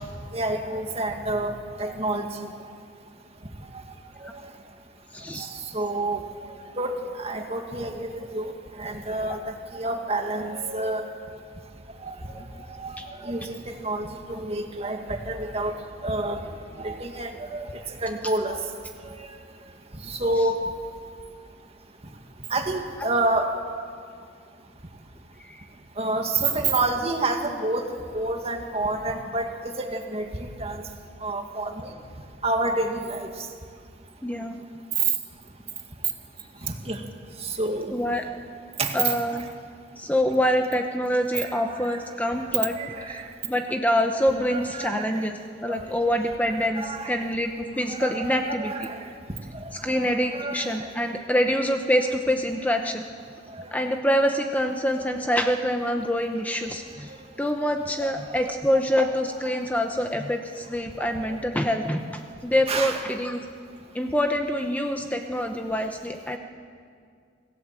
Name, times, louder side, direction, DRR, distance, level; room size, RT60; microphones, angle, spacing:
voice 1, 0.3-2.5 3.7-3.8 4.2-4.5 5.3-11.1 12.0-15.8 16.0-16.5 16.8-18.6 19.0-19.6 20.0-20.6 22.5-23.5 26.0-30.9 31.2-31.9 32.4-33.3 36.6-37.0 37.4-37.9 38.8-39.1 41.3-42.0 42.3-43.3 44.4-45.2 45.7-45.9 46.7-47.3 47.9-49.1 49.5-50.9 53.5-53.8 58.0-58.6 61.0-61.1 62.7-63.0, right 2 dB, 35° right, 4 dB, 2.0 m, -29 dB
voice 2, 5.1-5.5 9.3-9.4 13.0-13.1 25.4-25.6 34.2-34.6 37.9-38.2 38.9-39.4 40.0-48.9 49.8-53.0 53.7-57.1 57.4-63.4 63.9-66.4, equal, 10° left, 4 dB, 0.9 m, -26 dB
25.5 x 17.0 x 7.6 m, 2.2 s
head